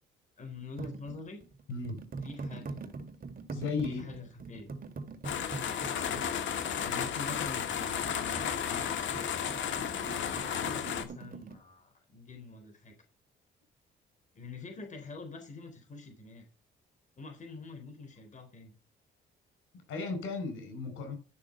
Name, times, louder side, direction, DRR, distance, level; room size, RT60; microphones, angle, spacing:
voice 1, 0.4-1.4 2.2-3.0 3.9-4.7 6.0-6.4 6.8-8.9 10.0-13.0 14.3-16.4 17.2-18.8, left 3 dB, 40° left, 4.0 m, -46 dB
sound 1, 0.8-11.6, right 4 dB, 45° right, 2.2 m, -43 dB
voice 2, 1.7-2.0 3.5-4.0 19.9-21.2, left 4 dB, 85° left, 5.4 m, -35 dB
sound 2, 5.2-11.0, left 8 dB, 70° left, 1.9 m, -33 dB
12.5 x 6.6 x 5.6 m
cardioid pair, 90°, 20 cm